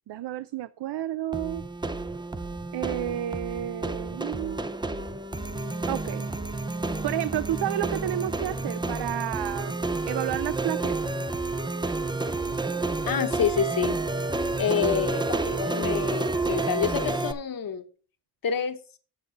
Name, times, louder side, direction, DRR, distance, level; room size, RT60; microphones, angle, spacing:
voice 1, 0.1-1.6 2.7-4.7 5.9-6.3 7.0-9.7 10.1-11.1, right 12 dB, 70° right, 0.5 m, -31 dB
sound 1, 1.3-17.3, right 2 dB, 10° right, 0.4 m, -30 dB
voice 2, 13.1-14.0 14.6-17.8 18.4-18.8, left 7 dB, 55° left, 1.1 m, -27 dB
7.8 x 7.4 x 5.0 m
wide cardioid pair, 150°, 42 cm